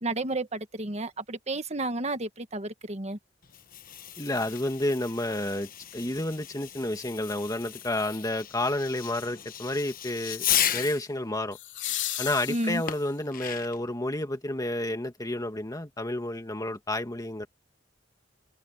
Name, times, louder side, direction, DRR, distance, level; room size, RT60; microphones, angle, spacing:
voice 1, 0.0-3.2 12.5-12.8, right 2 dB, 35° right, 1.6 m, -31 dB
Fireworks, 3.4-11.1 12.9-13.9, left 11 dB, 50° left, 1.1 m, -34 dB
voice 2, 4.2-11.6 12.2-17.5, left 1 dB, 20° left, 2.0 m, -30 dB
sound 1, 5.9-6.0 11.5-13.3 15.5-15.6, left 13 dB, 80° left, 3.4 m, -35 dB
head